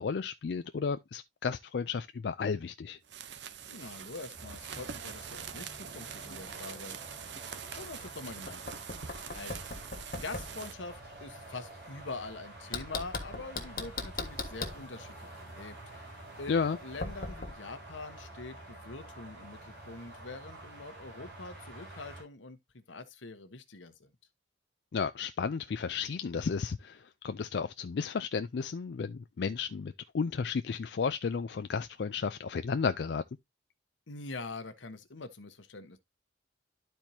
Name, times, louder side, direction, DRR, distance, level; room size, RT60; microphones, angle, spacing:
voice 1, 0.0-3.0 16.5-16.8 24.9-33.2, left 5 dB, 65° left, 0.4 m, -33 dB
sound 1, 3.0-10.7, right 7 dB, 70° right, 0.7 m, -44 dB
voice 2, 3.7-7.3 7.7-8.7 9.3-9.6 10.1-16.1 16.4-24.1 34.1-36.0, left 3 dB, 90° left, 1.1 m, -44 dB
sound 2, 4.3-22.2, right 2 dB, 55° right, 6.2 m, -48 dB
Knock, 8.5-10.6 12.7-14.8 17.0-17.5, left 3 dB, 45° left, 1.3 m, -39 dB
12.0 x 4.5 x 2.7 m
head